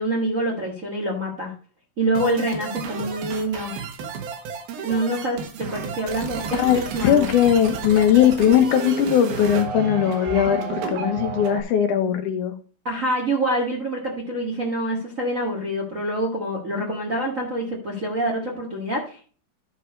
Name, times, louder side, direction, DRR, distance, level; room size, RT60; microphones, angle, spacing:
voice 1, 0.0-1.5 2.0-3.7 4.8-7.3 12.8-19.3, right 1 dB, 50° right, -1 dB, 0.9 m, -26 dB
sound 1, 2.2-11.6, right 6 dB, 90° right, 3.4 m, -32 dB
voice 2, 6.5-12.5, left 9 dB, 70° left, 7 dB, 2.2 m, -19 dB
12.0 x 4.7 x 5.1 m, 0.40 s
omnidirectional pair, 4.2 m